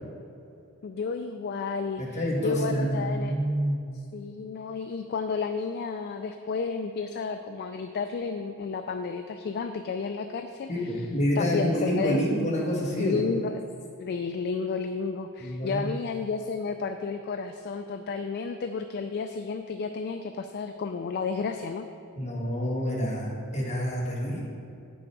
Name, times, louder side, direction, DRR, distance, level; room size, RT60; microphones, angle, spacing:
voice 1, 0.8-3.3 3.9-11.1 11.4-12.2 13.0-13.6 14.0-21.9, left 5 dB, 45° left, 7 dB, 0.3 m, -32 dB
voice 2, 2.0-3.8 10.7-13.2 15.4-15.8 22.2-23.3 23.5-24.4, equal, 30° left, -5 dB, 1.8 m, -27 dB
8.7 x 6.2 x 4.7 m, 2.6 s
head